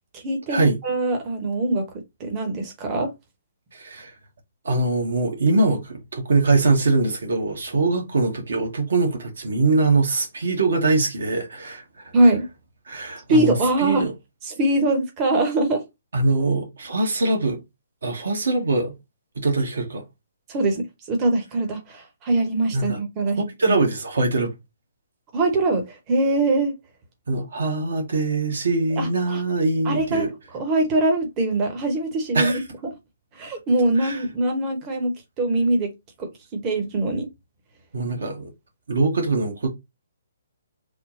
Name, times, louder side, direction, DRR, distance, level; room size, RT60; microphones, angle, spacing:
voice 1, 0.1-1.9 2.2-3.1 12.1-12.5 13.3-14.1 14.4-15.8 20.5-23.8 25.3-26.7 29.0-29.4 29.8-32.9 33.3-35.9 36.2-37.3, right 2 dB, 25° right, 1.0 m, -23 dB
voice 2, 3.7-4.1 4.6-11.8 12.9-13.5 13.8-14.1 16.1-17.6 18.0-18.9 19.4-20.0 22.7-23.0 23.6-24.5 27.3-30.3 32.3-32.6 34.0-34.2 37.9-38.5 38.9-39.7, right 3 dB, 60° right, 1.2 m, -22 dB
3.7 x 2.2 x 3.8 m
figure-of-eight pair, 130°, 0 cm